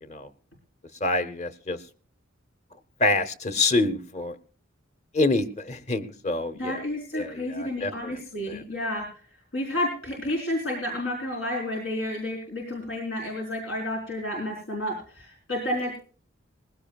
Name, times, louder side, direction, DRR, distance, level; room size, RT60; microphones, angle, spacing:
voice 1, 1.0-1.8 3.0-4.4 5.1-6.8 7.1-8.2 8.5-8.6, left 2 dB, 35° left, 11 dB, 1.0 m, -26 dB
voice 2, 6.5-9.1 9.5-16.0, left 1 dB, 90° left, -2 dB, 4.3 m, -31 dB
20.5 x 16.0 x 2.4 m, 0.40 s
head